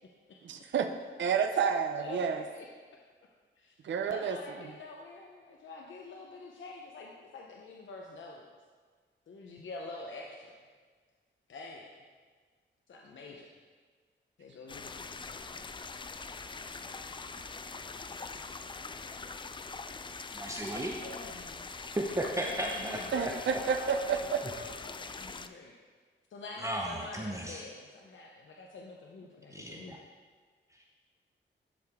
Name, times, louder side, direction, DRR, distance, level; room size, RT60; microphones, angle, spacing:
voice 1, 0.4-0.9 1.2-2.4 3.8-4.7 23.1-24.4, right 6 dB, 65° right, 6 dB, 0.5 m, -30 dB
voice 2, 2.0-2.7 3.2-3.3 3.6-3.7 4.1-8.5 9.3-10.6 11.5-11.9 12.9-13.5 14.4-15.2 21.0-21.7 22.3-25.7 26.3-30.0, left 3 dB, 70° left, -1 dB, 0.8 m, -46 dB
sound 1, 14.7-25.5, left 4 dB, 25° left, 0.3 m, -43 dB
voice 3, 20.3-21.0 22.0-23.0 26.6-27.6 29.5-30.0 30.8-30.9, right 1 dB, 15° right, -1 dB, 0.7 m, -34 dB
12.0 x 4.9 x 3.5 m, 1.5 s
wide cardioid pair, 90°, 20 cm